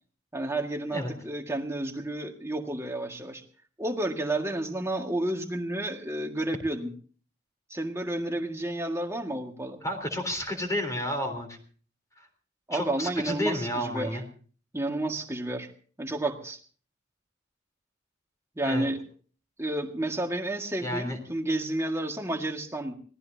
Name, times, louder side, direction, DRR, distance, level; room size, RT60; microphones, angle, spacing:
voice 1, 0.3-3.4 3.8-6.9 7.7-9.8 12.7-14.2 14.7-15.7 16.0-16.6 18.6-19.0 19.6-22.9, right 1 dB, 15° right, 3 dB, 1.9 m, -31 dB
voice 2, 9.8-11.6 12.2-12.3 12.7-14.2 18.6-18.9 20.8-21.2, left 1 dB, 15° left, 5 dB, 3.6 m, -31 dB
25.0 x 18.0 x 2.8 m, 0.43 s
head